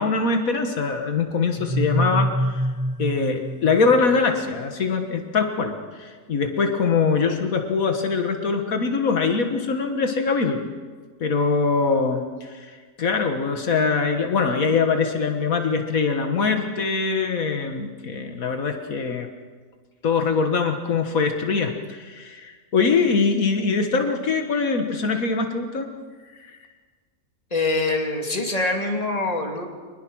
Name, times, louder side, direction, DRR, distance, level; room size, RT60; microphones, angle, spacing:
voice 1, 0.0-2.6 3.0-10.6 11.2-19.3 20.0-25.9 26.4-26.6, left 4 dB, 85° left, 5 dB, 2.0 m, -23 dB
sound 1, 1.6-4.4, right 1 dB, 10° right, 0.3 m, -26 dB
voice 2, 27.5-29.7, left 2 dB, 25° left, 2 dB, 2.6 m, -24 dB
24.5 x 20.5 x 6.3 m, 1.5 s
omnidirectional pair, 1.4 m